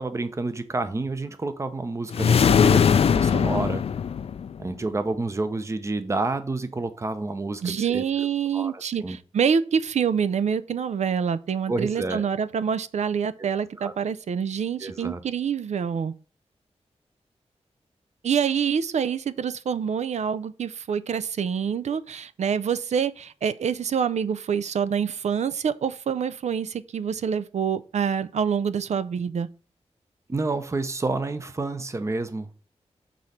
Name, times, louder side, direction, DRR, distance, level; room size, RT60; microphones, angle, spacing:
voice 1, 0.0-3.8 4.6-8.3 8.5-9.2 11.7-12.2 13.4-13.5 13.8-13.9 14.8-15.2 30.3-32.6, right 3 dB, 25° right, 0.7 m, -29 dB
sound 1, 2.1-4.7, left 7 dB, 60° left, 0.4 m, -20 dB
voice 2, 7.6-16.1 18.2-29.5, right 7 dB, 80° right, 0.5 m, -26 dB
6.2 x 4.2 x 4.9 m
wide cardioid pair, 145°, 12 cm